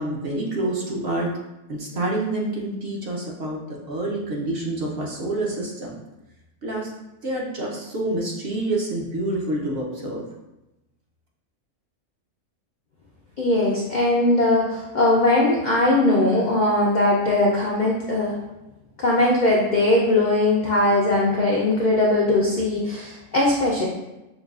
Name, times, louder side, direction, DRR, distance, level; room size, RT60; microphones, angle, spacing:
voice 1, 0.0-1.3 1.7-6.0 6.6-6.9 7.2-10.2, right 1 dB, 55° right, -3 dB, 0.8 m, -27 dB
voice 2, 13.4-18.4 19.0-23.9, left 2 dB, 65° left, -3 dB, 0.4 m, -20 dB
6.0 x 2.3 x 2.3 m, 0.97 s
omnidirectional pair, 1.4 m